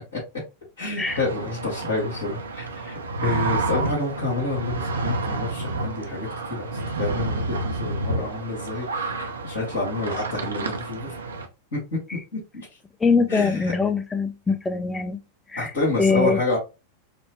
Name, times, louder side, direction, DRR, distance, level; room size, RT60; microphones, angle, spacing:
voice 1, 0.8-9.1 9.4-11.2 11.7-12.0 12.3-12.8 13.3-13.7 15.6-16.6, left 3 dB, 60° left, 2.0 m, -28 dB
sound 1, 1.1-11.5, right 2 dB, 75° right, 0.7 m, -29 dB
voice 2, 13.0-15.2 15.5-15.7 16.0-16.4, left 4 dB, 15° left, 0.6 m, -22 dB
5.1 x 2.2 x 3.1 m
figure-of-eight pair, 90°, 0 cm